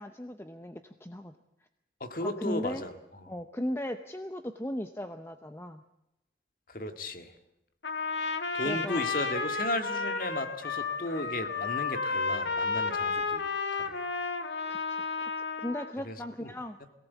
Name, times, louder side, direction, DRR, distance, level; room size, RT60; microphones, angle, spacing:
voice 1, 0.0-1.4 2.2-2.8 3.3-5.8 8.6-9.0 14.7-15.0 15.6-16.8, left 1 dB, 15° left, 8 dB, 0.7 m, -37 dB
voice 2, 2.0-3.3 6.7-7.3 8.5-13.4 13.7-13.9 16.0-16.2 16.4-16.5, left 1 dB, 50° left, 8 dB, 1.8 m, -35 dB
Trumpet, 7.8-15.9, left 4 dB, 85° left, 1.6 m, -32 dB
22.5 x 17.5 x 8.4 m, 0.90 s
head